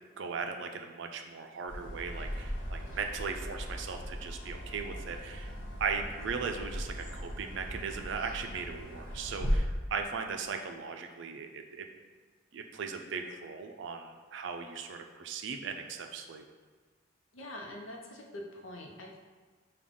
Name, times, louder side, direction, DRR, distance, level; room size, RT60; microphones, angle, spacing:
voice 1, 0.2-5.5 5.8-11.9 12.5-16.4, right 5 dB, 65° right, 5 dB, 0.4 m, -38 dB
sound 1, 1.7-9.6, equal, 65° left, 1.2 m, -38 dB
voice 2, 17.3-19.2, left 1 dB, 90° left, 0 dB, 0.7 m, -44 dB
5.2 x 2.3 x 3.6 m, 1.4 s
head